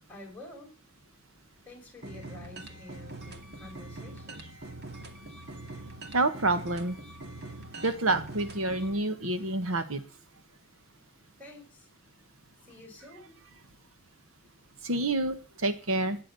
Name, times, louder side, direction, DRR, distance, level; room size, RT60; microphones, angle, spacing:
voice 1, 0.1-0.7 1.7-4.5 11.4-11.9 12.6-13.4, left 2 dB, 10° left, -1 dB, 5.9 m, -49 dB
sound 1, 2.0-8.9, right 2 dB, 55° right, 2.2 m, -43 dB
voice 2, 6.1-7.0 7.8-10.0 14.8-16.2, right 2 dB, 80° right, 10 dB, 1.5 m, -28 dB
15.0 x 10.0 x 7.0 m, 0.39 s
head